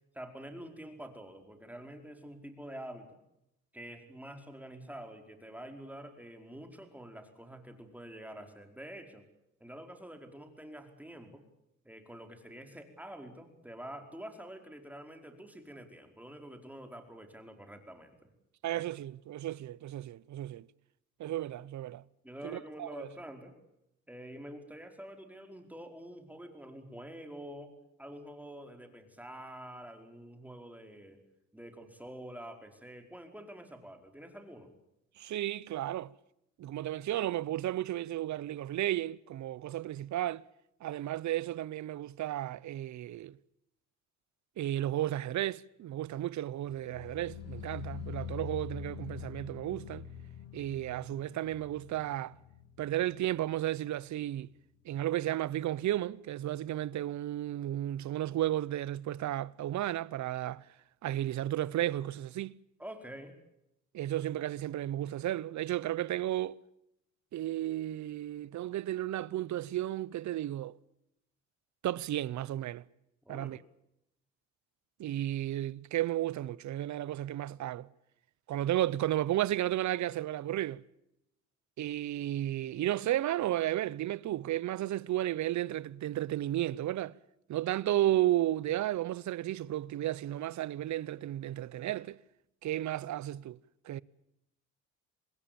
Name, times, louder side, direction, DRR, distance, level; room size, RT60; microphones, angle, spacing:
voice 1, 0.1-3.1 3.7-9.2 9.6-11.4 11.8-18.3 22.2-23.5 24.1-27.7 28.0-31.2 31.5-34.7 62.8-63.3 73.2-73.6, right 1 dB, 5° right, 4.9 m, -47 dB
voice 2, 18.6-20.7 21.2-22.0 22.4-23.1 35.2-36.1 36.6-40.4 40.8-43.4 44.6-50.1 50.5-52.3 52.8-54.5 54.8-60.6 61.0-62.6 63.9-66.6 67.3-70.8 71.8-72.8 73.3-73.6 75.0-77.9 78.5-80.8 81.8-87.2 87.5-92.2 92.6-93.6 93.8-94.0, right 13 dB, 70° right, 0.8 m, -33 dB
sound 1, 46.7-53.8 54.0-54.5 54.8-54.9, left 8 dB, 55° left, 3.6 m, -45 dB
26.0 x 20.5 x 7.1 m
cardioid pair, 90°, 30 cm